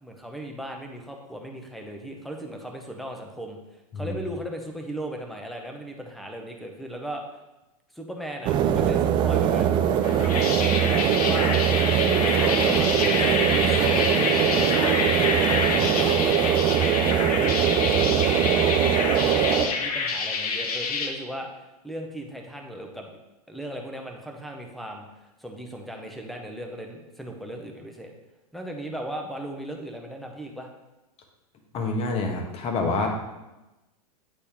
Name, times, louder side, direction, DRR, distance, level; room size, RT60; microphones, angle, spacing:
voice 1, 0.0-3.6 3.9-7.2 7.9-9.7 10.3-13.2 13.4-15.1 15.7-16.9 17.3-21.5 21.8-23.1 23.5-25.1 25.4-28.1 28.5-30.7, right 1 dB, ahead, 2 dB, 0.8 m, -37 dB
sound 1, 8.4-19.7, right 9 dB, 25° right, 0.4 m, -22 dB
sound 2, 10.0-21.1, left 4 dB, 70° left, 1.0 m, -27 dB
voice 2, 31.7-33.1, left 3 dB, 30° left, 3 dB, 1.2 m, -27 dB
8.6 x 4.1 x 3.5 m, 1.0 s
hypercardioid pair, 125°, 20 cm